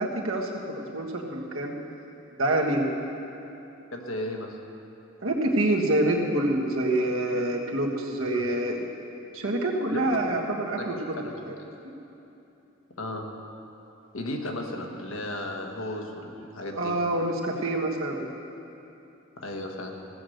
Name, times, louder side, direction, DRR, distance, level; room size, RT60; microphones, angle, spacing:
voice 1, 0.0-1.7 2.4-2.9 5.2-8.8 9.3-11.2 11.4-11.5 16.8-18.3, right 1 dB, 90° right, 0 dB, 1.5 m, -26 dB
voice 2, 3.9-4.6 8.3-8.4 9.9-10.2 10.8-11.0 11.2-11.4 12.9-13.3 14.1-16.9 19.4-20.0, left 1 dB, 90° left, 2 dB, 1.4 m, -35 dB
15.5 x 6.5 x 7.9 m, 2.9 s
head